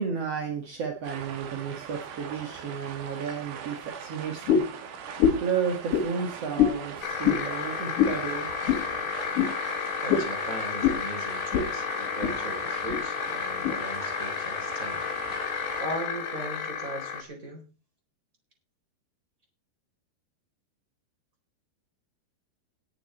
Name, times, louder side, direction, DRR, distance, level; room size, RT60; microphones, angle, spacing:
voice 1, 0.0-4.7 5.4-8.5, right 6 dB, 50° right, 2 dB, 1.9 m, -32 dB
sound 1, 1.0-15.8, right 8 dB, 90° right, 4.4 m, -41 dB
sound 2, 4.5-4.8 5.2-5.5 5.9-6.1 6.6-6.8 7.2-7.4 8.0-8.2 8.7-8.8 9.3-9.5 10.1-10.3 10.8-11.0 11.5-11.7 12.0-12.4 12.9-13.0 13.6-13.8, left 8 dB, 55° left, 3.0 m, -23 dB
sound 3, 7.0-17.2, left 7 dB, 70° left, 3.9 m, -32 dB
voice 2, 10.0-15.1 15.8-17.7, right 1 dB, 20° right, 3 dB, 3.9 m, -38 dB
18.5 x 7.8 x 4.4 m, 0.33 s
omnidirectional pair, 5.3 m